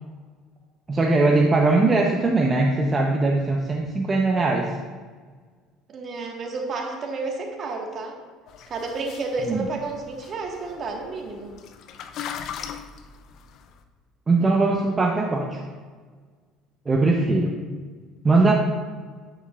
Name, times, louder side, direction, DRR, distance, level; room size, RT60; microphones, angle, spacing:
voice 1, 0.9-4.7 9.4-9.6 14.3-15.6 16.9-17.5 18.2-18.5, right 3 dB, 25° right, 0 dB, 0.9 m, -20 dB
voice 2, 5.9-8.1 8.7-11.5, right 3 dB, 45° right, 1 dB, 1.7 m, -31 dB
sound 1, 8.5-13.8, left 8 dB, 60° left, 0.6 m, -39 dB
9.4 x 8.9 x 2.5 m, 1.5 s
hypercardioid pair, 70°, 0 cm